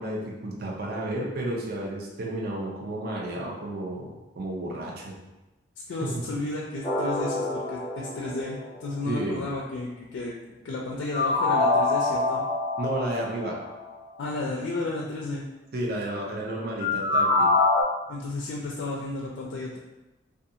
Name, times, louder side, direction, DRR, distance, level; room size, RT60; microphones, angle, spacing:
voice 1, 0.0-5.1 6.0-6.2 9.1-9.4 12.8-13.6 15.7-17.5, right 1 dB, 55° right, -2 dB, 0.5 m, -32 dB
voice 2, 5.9-10.3 10.6-12.4 14.2-15.5 18.1-19.8, left 2 dB, 85° left, -2 dB, 0.3 m, -32 dB
sound 1, 6.8-8.9 11.1-13.8 16.8-17.8, left 3 dB, 20° left, 0.6 m, -25 dB
2.4 x 2.3 x 2.7 m, 1.0 s
head